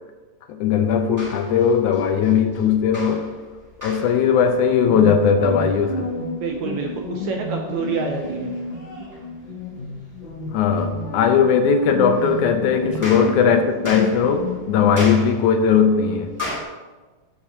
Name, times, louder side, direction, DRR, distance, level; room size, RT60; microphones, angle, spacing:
voice 1, 0.5-3.2 3.8-6.1 10.5-16.3, left 6 dB, 80° left, 6 dB, 1.8 m, -18 dB
sound 1, 0.9-16.6, left 1 dB, 5° right, 1.5 m, -39 dB
sound 2, 4.9-14.6, left 2 dB, 45° left, 2.9 m, -31 dB
voice 2, 6.4-8.5, right 5 dB, 80° right, 2 dB, 1.6 m, -27 dB
13.0 x 7.5 x 2.9 m, 1.3 s
omnidirectional pair, 4.1 m